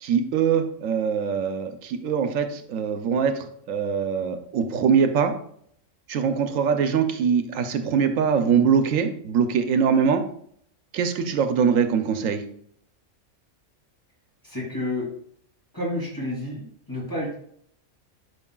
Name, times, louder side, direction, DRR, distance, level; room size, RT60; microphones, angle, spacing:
voice 1, 0.0-5.3 6.1-10.2 10.9-12.4, right 6 dB, 80° right, 7 dB, 1.1 m, -23 dB
voice 2, 14.4-15.1 15.7-17.4, left 1 dB, 15° left, -5 dB, 2.9 m, -30 dB
11.0 x 5.1 x 2.3 m, 0.65 s
omnidirectional pair, 1.3 m